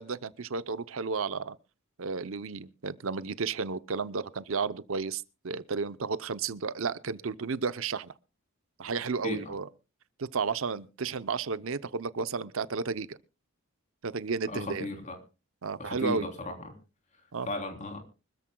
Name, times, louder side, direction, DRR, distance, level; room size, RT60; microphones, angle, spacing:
voice 1, 0.0-1.6 2.0-8.1 8.8-9.7 10.2-13.2 14.0-14.9 15.6-16.3 17.3-17.5, right 5 dB, 65° right, 0.7 m, -32 dB
voice 2, 14.5-15.2 15.8-16.7 17.5-18.0, left 2 dB, 35° left, 3.3 m, -35 dB
25.0 x 13.5 x 2.2 m
head